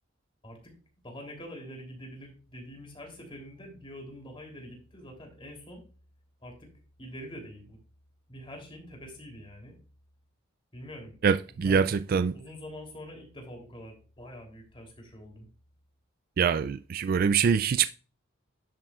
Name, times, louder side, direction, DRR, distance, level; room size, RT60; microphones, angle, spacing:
voice 1, 1.0-5.8 6.4-6.7 7.0-7.8 8.3-9.8 10.7-11.2 11.5-11.9 12.3-15.5, equal, 25° left, 3.2 m, -45 dB
voice 2, 11.2-12.3 16.4-17.9, right 6 dB, 45° right, 0.3 m, -24 dB
10.5 x 7.4 x 2.4 m
head